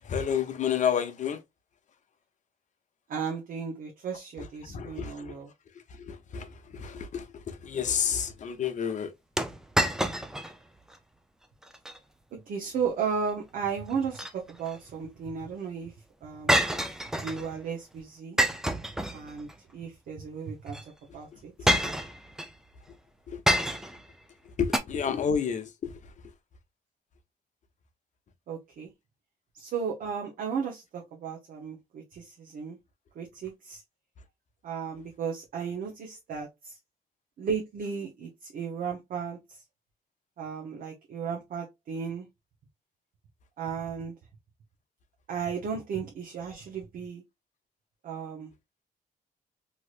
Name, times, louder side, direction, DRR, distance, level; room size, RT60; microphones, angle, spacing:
voice 1, 0.0-1.4 4.4-5.4 5.9-9.1 21.1-21.7 22.9-23.0 23.3-23.4 24.4-26.3, left 7 dB, 55° left, 0.7 m, -31 dB
voice 2, 3.1-5.5 12.5-15.9 16.2-16.5 17.2-18.4 19.1-20.8 21.1-21.7 28.5-28.9 29.6-32.8 33.2-33.8 34.6-36.7 37.4-39.6 40.4-42.3 43.6-44.1 45.3-47.2 48.0-48.5, right 6 dB, 70° right, 0.7 m, -35 dB
sound 1, 9.4-10.5 10.9-11.0 11.6-12.0 13.9-14.8 16.5-17.5 18.4-19.5 20.7-20.8 21.7-22.5 23.5-24.1 24.7-24.8, equal, 5° right, 0.4 m, -27 dB
3.1 x 2.8 x 2.4 m
cardioid pair, 100°, 15 cm